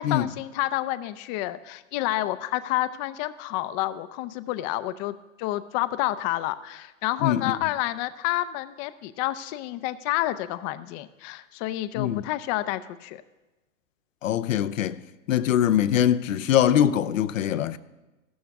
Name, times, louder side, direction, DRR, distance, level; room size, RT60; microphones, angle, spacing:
voice 1, 0.0-13.2, left 15 dB, 35° left, 0.5 m, -29 dB
voice 2, 14.2-15.0 15.3-17.8, left 10 dB, 80° left, 0.6 m, -22 dB
13.5 x 12.5 x 3.5 m
hypercardioid pair, 115°, 39 cm